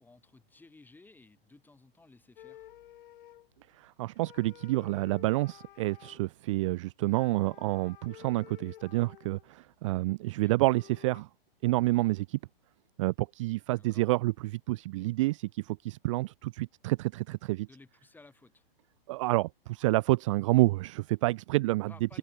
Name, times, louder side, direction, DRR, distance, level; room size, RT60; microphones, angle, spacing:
voice 1, 0.0-2.7 13.7-14.1 17.7-18.6 21.9-22.2, left 3 dB, 5° left, 7.6 m, -57 dB
sound 1, 2.4-3.7 4.1-6.2 7.1-9.6 10.3-10.4 10.5-11.2, left 12 dB, 60° left, 4.5 m, -53 dB
voice 2, 3.8-11.3 11.6-12.4 13.0-17.7 19.1-22.2, right 20 dB, 35° right, 0.4 m, -29 dB
hypercardioid pair, 135°, 30 cm